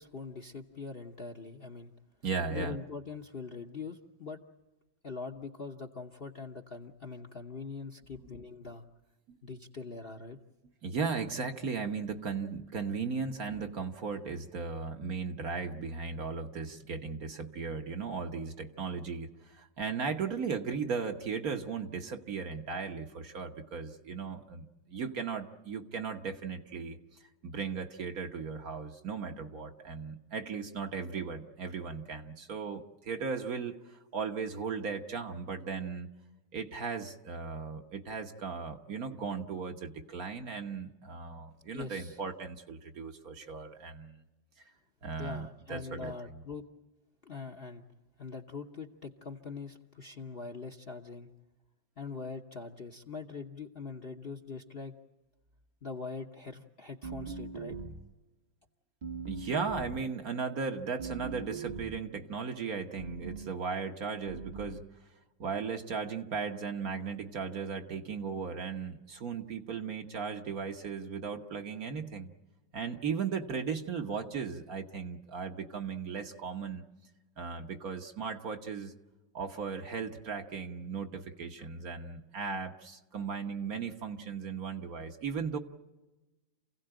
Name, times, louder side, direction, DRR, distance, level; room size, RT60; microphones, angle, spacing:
voice 1, 0.0-1.9 2.5-4.4 5.0-8.8 9.4-10.4 41.7-42.2 45.2-46.6 47.2-47.8 48.2-51.3 52.0-54.9 55.8-57.8, left 4 dB, 40° left, 5 dB, 1.0 m, -42 dB
voice 2, 2.2-2.8 9.3-9.4 10.8-27.0 27.4-36.1 36.5-44.2 45.0-46.4 59.3-64.8 65.4-72.3 72.7-76.8 77.4-78.9 79.3-85.6, right 5 dB, 50° right, 5 dB, 1.6 m, -37 dB
sound 1, 57.0-58.2 59.0-60.1 61.0-62.1 63.0-63.5 64.3-64.9, right 4 dB, 30° right, 1.0 m, -41 dB
28.5 x 16.5 x 8.9 m, 1.1 s
omnidirectional pair, 2.1 m